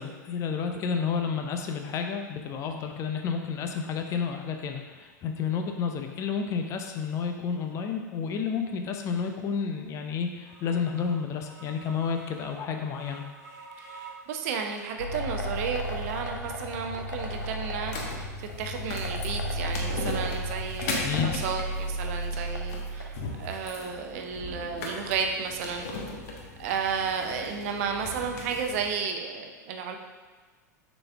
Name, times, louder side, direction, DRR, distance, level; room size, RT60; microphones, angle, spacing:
voice 1, 0.0-13.2 21.0-21.3, left 6 dB, 30° left, 4 dB, 0.6 m, -31 dB
sound 1, 5.7-5.8 6.3-6.4 7.0-7.1 7.6-7.8 8.3-8.4 8.9-9.1 9.6-9.7 10.2-15.0 15.4-16.3 16.7-17.6 18.0-19.1 19.3-20.3, right 4 dB, 30° right, 1.2 m, -52 dB
voice 2, 14.3-25.9 26.6-30.0, right 6 dB, 50° right, 4 dB, 0.7 m, -33 dB
sound 2, 15.0-23.6, equal, 85° left, 0.8 m, -34 dB
sound 3, 17.8-28.8, left 3 dB, 50° left, 1.1 m, -38 dB
6.5 x 4.1 x 3.5 m, 1.3 s
figure-of-eight pair, 90°, 10 cm